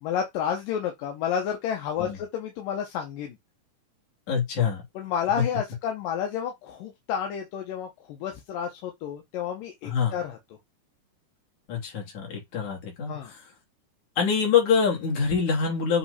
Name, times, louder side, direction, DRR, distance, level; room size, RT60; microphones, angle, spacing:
voice 1, 0.0-3.4 5.0-10.4 13.1-13.3, left 8 dB, 80° left, 2.7 m, -30 dB
voice 2, 4.3-4.8 5.4-5.5 9.8-10.2 11.7-13.4 14.2-16.0, left 6 dB, 60° left, 4.2 m, -25 dB
7.7 x 3.3 x 4.2 m
omnidirectional pair, 3.9 m